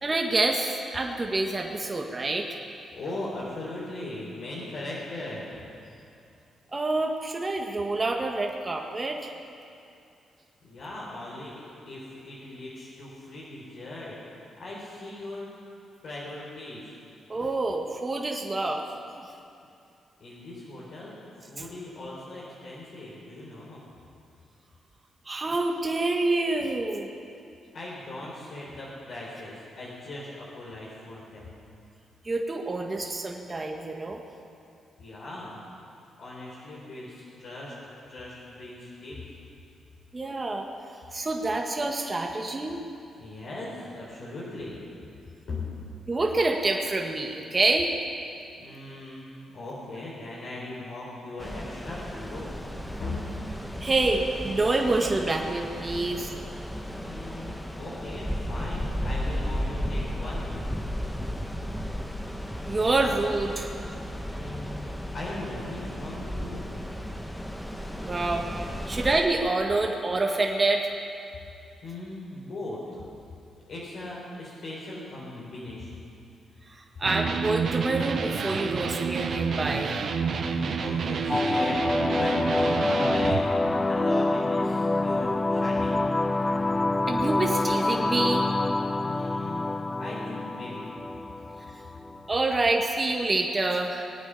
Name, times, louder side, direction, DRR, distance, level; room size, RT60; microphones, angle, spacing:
voice 1, 0.0-2.5 6.7-9.3 17.3-18.8 25.3-27.1 32.2-34.2 40.1-40.7 41.1-42.8 46.1-47.9 53.8-56.3 62.7-63.7 68.0-68.5 68.9-70.9 77.0-79.9 87.1-88.4 92.3-94.1, right 2 dB, 30° right, 1 dB, 1.6 m, -27 dB
voice 2, 2.9-5.5 10.6-15.5 16.0-17.0 20.2-21.2 21.5-23.8 27.7-31.5 35.0-35.6 36.2-37.8 38.1-39.2 43.2-44.8 45.5-45.7 48.6-49.3 49.5-52.5 53.0-53.2 57.0-60.8 64.2-66.7 71.8-73.0 73.7-76.1 80.5-86.1 88.9-89.7 90.0-90.9, left 2 dB, 65° left, -7 dB, 4.0 m, -39 dB
sound 1, 51.4-69.2, equal, 5° left, 1.6 m, -34 dB
Electric guitar, 77.0-83.5, right 5 dB, 65° right, 1.0 m, -29 dB
sound 2, 81.3-92.3, left 2 dB, 25° left, 0.6 m, -26 dB
20.5 x 9.0 x 7.1 m, 2.6 s
supercardioid pair, 55°, 0 cm